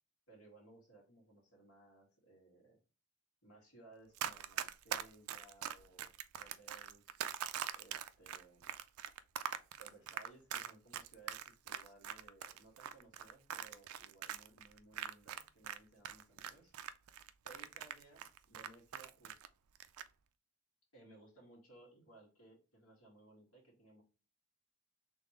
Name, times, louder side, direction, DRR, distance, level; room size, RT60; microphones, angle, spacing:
voice 1, 0.3-2.8 3.4-7.2 7.7-8.8 9.8-16.7 17.0-17.1 17.4-19.4 20.9-24.0, right 2 dB, 70° left, -3 dB, 2.1 m, -61 dB
Run, 4.2-15.8 16.0-19.5 19.8-20.1, right 10 dB, 80° right, 0.4 m, -42 dB
3.9 x 3.3 x 3.0 m, 0.33 s
head